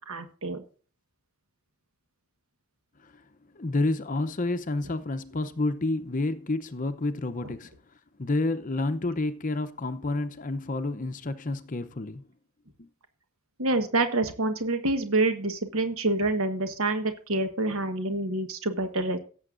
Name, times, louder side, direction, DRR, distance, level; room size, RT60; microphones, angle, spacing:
voice 1, 0.1-0.6 13.6-19.2, right 2 dB, 70° right, 1.4 m, -27 dB
voice 2, 3.5-7.7 8.2-12.2 12.8-12.9, left 2 dB, 35° left, 0.6 m, -29 dB
17.0 x 7.6 x 2.5 m
head